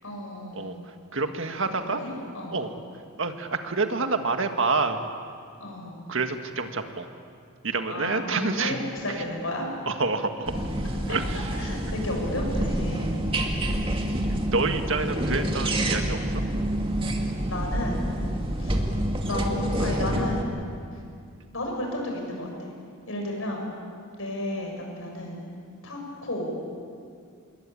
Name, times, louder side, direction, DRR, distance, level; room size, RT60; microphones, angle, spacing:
voice 1, 0.0-0.7 1.6-2.6 5.6-6.0 7.9-9.7 11.1-13.2 17.0-18.1 18.6-18.9 19.3-20.5 20.9-21.0 21.5-22.7 23.1-23.6 24.2-25.4 25.8-26.5, left 1 dB, 70° left, 1 dB, 7.4 m, -33 dB
voice 2, 0.5-2.0 2.5-2.7 3.2-5.0 6.1-7.1 7.6-8.8 9.9-10.5 11.1-11.5 14.5-16.4, right 3 dB, 60° right, 6 dB, 1.8 m, -28 dB
sound 1, 10.5-20.4, right 1 dB, 25° right, 2.3 m, -27 dB
27.0 x 22.5 x 8.8 m, 2.3 s
head